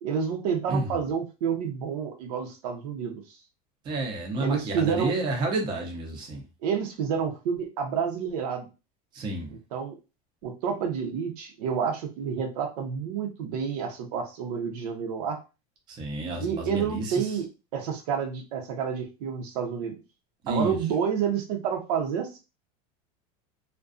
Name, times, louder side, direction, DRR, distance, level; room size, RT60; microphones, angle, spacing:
voice 1, 0.0-3.2 4.4-5.1 6.6-8.7 9.5-9.9 10.4-15.4 16.4-17.5 17.7-19.9 20.5-22.4, right 7 dB, 85° right, 0.7 m, -29 dB
voice 2, 3.8-6.5 9.1-9.5 15.9-17.3 20.4-20.8, right 2 dB, 25° right, 0.6 m, -30 dB
2.5 x 2.2 x 2.4 m
supercardioid pair, 165°, 20 cm